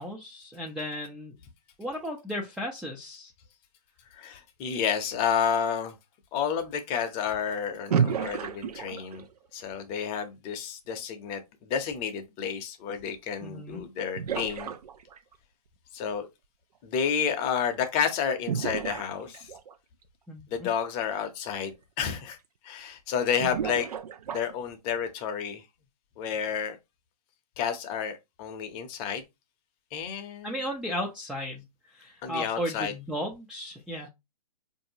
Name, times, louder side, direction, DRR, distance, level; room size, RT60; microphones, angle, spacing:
voice 1, 0.0-1.4 1.8-3.3 13.4-13.9 20.3-20.7 30.4-34.1, equal, 5° right, 0.3 m, -35 dB
voice 2, 4.1-5.9 6.3-9.3 9.5-14.7 15.9-16.3 16.8-19.5 20.5-22.4 22.6-23.9 24.3-25.6 26.2-26.8 27.6-29.2 29.9-30.6 32.2-32.9, left 7 dB, 25° left, 0.6 m, -30 dB
sound 1, 7.9-9.4 13.3-13.4 14.2-15.3 18.5-19.7 21.1-21.2 21.6-21.7 23.4-24.6, right 7 dB, 70° right, 0.5 m, -31 dB
4.4 x 2.6 x 2.8 m
hypercardioid pair, 135°, 20 cm